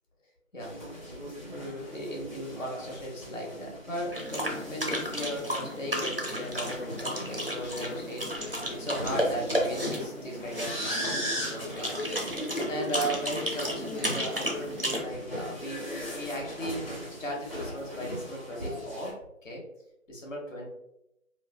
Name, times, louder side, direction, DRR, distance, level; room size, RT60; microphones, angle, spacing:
sound 1, 0.6-19.1, equal, 35° left, 1.1 m, -38 dB
voice 1, 1.2-12.3 12.6-16.8 17.2-19.1 19.4-19.6 20.1-20.7, equal, 65° left, -1 dB, 1.1 m, -37 dB
sound 2, 4.1-15.0, equal, 45° right, 0.4 m, -33 dB
3.2 x 2.1 x 2.2 m, 0.83 s
figure-of-eight pair, 165°, 42 cm